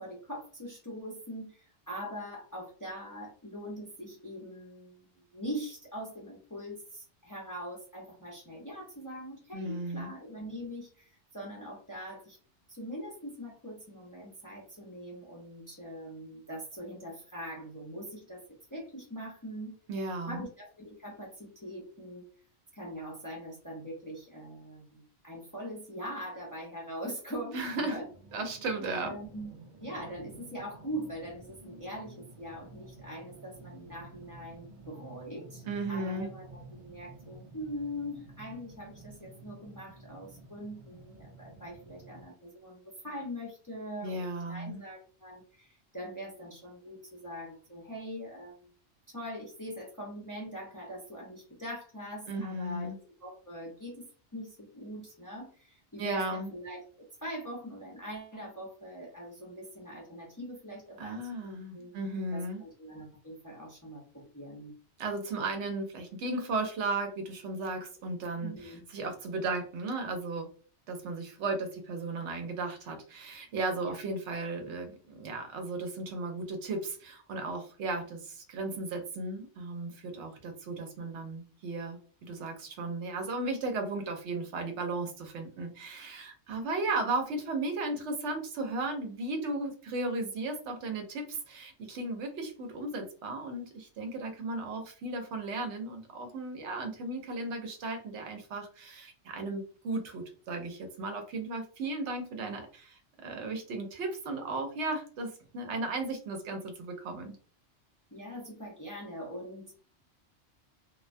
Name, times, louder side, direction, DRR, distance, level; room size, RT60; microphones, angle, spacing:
voice 1, 0.0-12.4 12.7-18.4 18.7-19.7 20.3-22.2 22.7-28.1 28.9-29.5 29.8-48.7 49.1-52.9 53.2-54.1 54.3-56.8 57.2-61.9 62.3-64.7 68.4-68.8 73.8-74.0 108.1-109.7, equal, 25° left, -4 dB, 0.5 m, -42 dB
voice 2, 9.5-10.1 19.9-20.4 27.5-28.0 28.3-29.2 35.6-36.3 44.0-44.8 52.3-53.0 56.0-56.5 61.0-62.6 65.0-70.5 70.9-107.4, right 2 dB, 80° right, 5 dB, 0.9 m, -35 dB
sound 1, 27.6-42.3, right 2 dB, 55° right, 0.6 m, -52 dB
2.3 x 2.1 x 2.5 m, 0.42 s
omnidirectional pair, 1.2 m